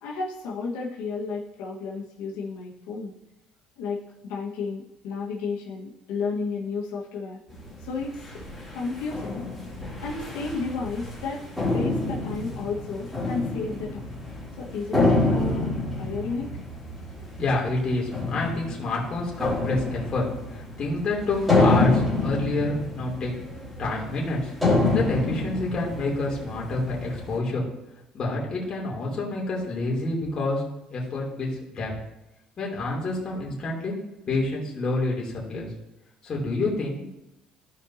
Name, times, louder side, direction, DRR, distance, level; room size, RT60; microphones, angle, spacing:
voice 1, 0.0-3.1 3.8-7.4 7.8-8.2 8.7-9.5 10.0-14.2 14.6-15.7 16.0-16.5, left 4 dB, 90° left, -4 dB, 1.7 m, -32 dB
sound 1, 7.5-27.4, left 2 dB, ahead, 3.0 m, -28 dB
voice 2, 17.1-20.2 20.5-23.3 23.8-24.5 24.9-27.7 28.1-30.6 30.9-31.9 32.6-33.9 34.3-35.7 36.2-37.1, left 2 dB, 35° left, -3 dB, 3.2 m, -28 dB
15.5 x 5.5 x 2.9 m, 0.92 s
cardioid pair, 135°, 2 cm